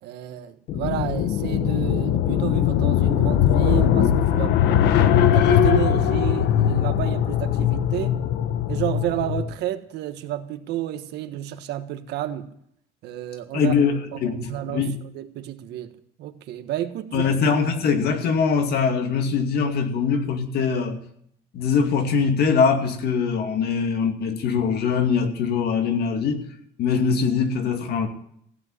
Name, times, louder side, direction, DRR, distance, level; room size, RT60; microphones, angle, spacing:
voice 1, 0.0-4.6 5.3-8.2 8.7-12.5 13.0-13.7 14.1-17.3, right 12 dB, 80° right, 1.4 m, -31 dB
sound 1, 0.7-9.5, left 10 dB, 85° left, 1.2 m, -20 dB
voice 2, 13.5-15.0 17.1-21.0 21.5-26.4 26.8-28.1, left 5 dB, 70° left, 2.4 m, -22 dB
16.0 x 7.6 x 9.7 m
cardioid pair, 110°, 17 cm